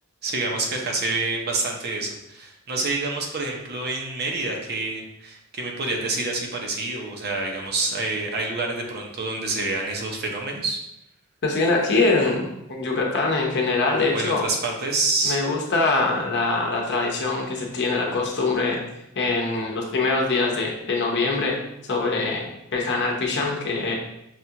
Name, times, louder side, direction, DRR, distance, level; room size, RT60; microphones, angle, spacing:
voice 1, 0.2-10.8 14.1-15.4, right 3 dB, 50° right, 1 dB, 0.7 m, -27 dB
voice 2, 11.4-14.4 15.2-18.8 19.2-21.6 21.8-23.9, left 3 dB, 55° left, -1 dB, 0.8 m, -23 dB
5.7 x 2.3 x 2.8 m, 0.84 s
head